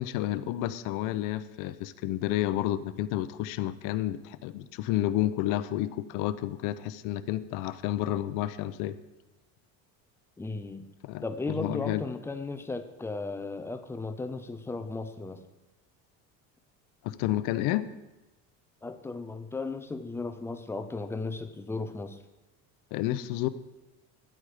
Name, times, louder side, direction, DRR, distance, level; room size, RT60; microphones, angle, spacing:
voice 1, 0.0-9.0 11.0-12.0 17.0-17.9 22.9-23.5, left 14 dB, 60° left, 14 dB, 0.7 m, -30 dB
voice 2, 10.4-10.8 11.2-15.4 18.8-22.2, left 3 dB, 5° left, 9 dB, 0.4 m, -35 dB
13.0 x 9.8 x 5.0 m, 1.0 s
cardioid pair, 175°, 36 cm